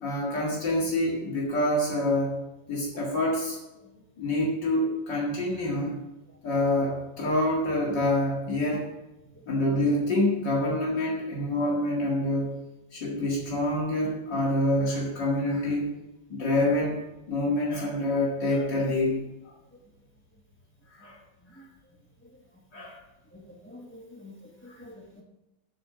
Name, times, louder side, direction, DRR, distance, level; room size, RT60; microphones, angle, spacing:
voice 1, 0.0-2.4 2.7-3.6 4.2-6.0 6.4-8.9 9.5-12.6 12.9-15.9 16.3-19.2 19.4-19.5 20.9-21.2 22.7-23.0 24.7-24.8, left 1 dB, 65° left, -4 dB, 2.6 m, -26 dB
voice 2, 23.3-24.4 24.6-25.2, left 1 dB, 5° left, 1 dB, 1.1 m, -47 dB
8.3 x 6.4 x 7.5 m, 0.98 s
omnidirectional pair, 2.1 m